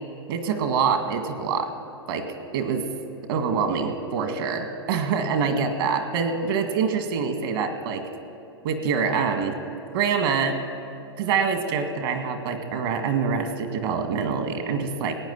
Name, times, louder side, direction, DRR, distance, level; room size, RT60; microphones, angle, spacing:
voice 1, 0.3-1.7 2.1-2.3 2.5-2.9 3.3-8.0 8.6-9.6 9.9-10.6 11.2-15.2, right 6 dB, 60° right, 6 dB, 1.9 m, -25 dB
17.0 x 9.5 x 7.2 m, 2.6 s
hypercardioid pair, 115°, 14 cm